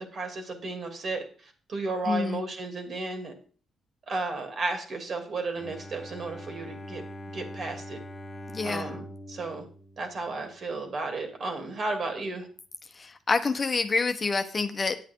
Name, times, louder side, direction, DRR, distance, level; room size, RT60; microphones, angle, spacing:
voice 1, 0.1-3.3 4.1-7.0 7.3-8.0 8.6-9.6 10.0-12.5, right 3 dB, 50° right, 5 dB, 2.7 m, -33 dB
voice 2, 2.0-2.4 8.5-8.9 12.9-15.0, left 4 dB, 30° left, 7 dB, 1.0 m, -27 dB
Bowed string instrument, 5.5-10.8, equal, 15° left, 1.4 m, -43 dB
9.0 x 8.4 x 4.6 m, 0.41 s
cardioid pair, 90°, 0 cm